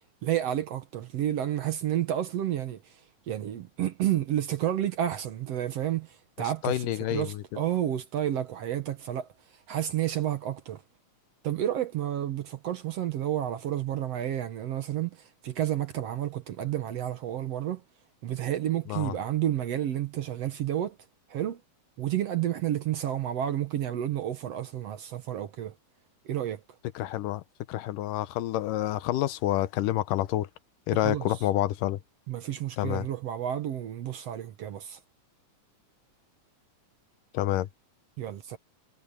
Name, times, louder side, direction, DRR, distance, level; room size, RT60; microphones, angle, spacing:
voice 1, 0.2-2.8 3.3-6.1 6.4-9.3 9.7-10.8 11.4-15.2 15.4-17.8 18.2-21.0 21.3-21.6 22.0-25.7 26.3-26.6 31.0-31.3 32.3-35.0 38.2-38.6, right 11 dB, 60° right, 1.8 m, -30 dB
voice 2, 6.6-7.6 18.9-19.2 27.0-27.4 27.7-30.5 30.9-32.0 32.8-33.1 37.3-37.7, left 14 dB, 85° left, 2.4 m, -28 dB
omnidirectional pair, 3.8 m